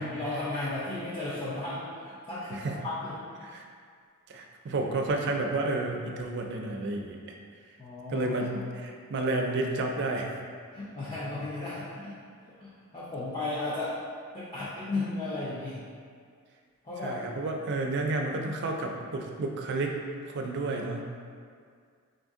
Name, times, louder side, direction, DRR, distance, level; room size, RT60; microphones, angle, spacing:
voice 1, 0.0-3.3 7.8-8.4 10.7-12.2 12.6-14.0 14.3-15.8 16.8-17.2, left 2 dB, 20° left, -10 dB, 0.5 m, -35 dB
voice 2, 4.3-7.4 8.1-10.3 17.0-20.0 20.3-21.1, right 2 dB, 50° right, 2 dB, 0.4 m, -31 dB
3.8 x 2.6 x 3.5 m, 2.1 s
head